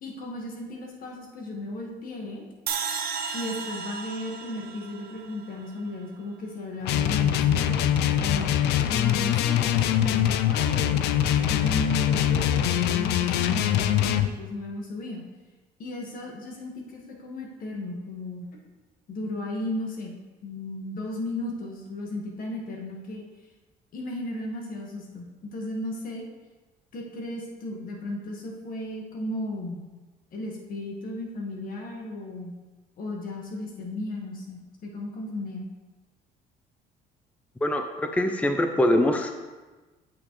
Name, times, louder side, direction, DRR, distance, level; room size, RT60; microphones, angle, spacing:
voice 1, 0.0-2.5 3.3-8.5 8.9-15.2 15.8-18.5 19.1-20.1 20.4-23.2 23.9-26.3 26.9-29.9 30.3-32.6 33.0-35.7, left 1 dB, 55° left, 0 dB, 1.6 m, -35 dB
sound 1, 2.7-5.9, right 6 dB, 60° right, 0.8 m, -34 dB
sound 2, 6.8-14.3, left 11 dB, 80° left, 0.5 m, -23 dB
voice 2, 37.6-39.3, left 1 dB, 10° left, 6 dB, 0.5 m, -23 dB
8.5 x 6.1 x 3.1 m, 1.2 s
cardioid pair, 110°, 17 cm